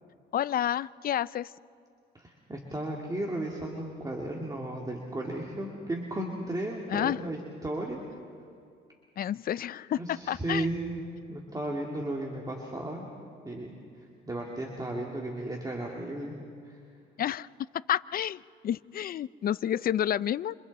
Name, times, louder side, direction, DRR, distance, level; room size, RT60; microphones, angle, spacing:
voice 1, 0.3-1.5 6.9-7.2 9.2-10.7 17.2-17.5 17.9-20.6, left 10 dB, 50° left, 18 dB, 0.4 m, -30 dB
voice 2, 2.1-8.0 10.0-13.1 13.4-13.7 14.3-16.3 16.6-16.8, right 1 dB, 20° right, 0 dB, 2.4 m, -34 dB
28.0 x 26.5 x 4.2 m, 2.4 s
cardioid pair, 90°, 20 cm